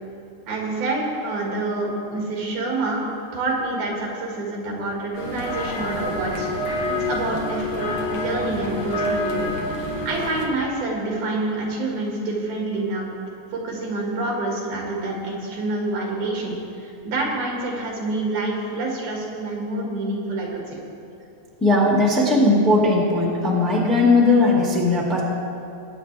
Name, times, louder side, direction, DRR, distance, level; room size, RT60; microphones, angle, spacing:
voice 1, 0.5-3.1 3.3-9.5 9.8-13.1 13.5-20.8, right 2 dB, 90° right, -3 dB, 3.8 m, -27 dB
sound 1, 5.1-10.5, left 1 dB, 60° left, 2.7 m, -27 dB
voice 2, 21.6-25.2, left 2 dB, ahead, -2 dB, 1.0 m, -18 dB
20.5 x 9.1 x 3.4 m, 2.7 s
omnidirectional pair, 3.5 m